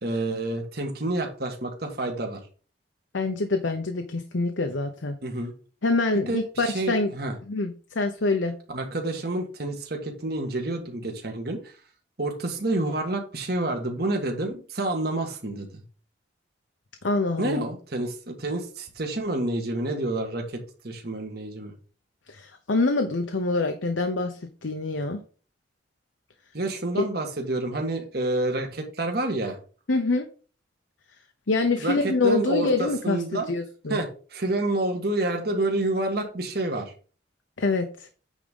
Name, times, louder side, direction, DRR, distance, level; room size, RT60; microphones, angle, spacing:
voice 1, 0.0-2.4 5.2-5.5 6.3-7.3 8.7-11.7 12.2-15.8 17.4-21.7 26.5-29.6 31.8-33.5 33.9-36.9, right 2 dB, 55° right, 3 dB, 1.7 m, -28 dB
voice 2, 3.1-5.2 5.8-7.1 7.5-8.5 17.0-17.7 22.3-24.3 24.6-25.2 27.0-27.1 29.9-30.3 31.5-34.0 37.6-38.1, left 3 dB, 85° left, 5 dB, 0.8 m, -25 dB
9.2 x 3.7 x 5.2 m, 0.39 s
head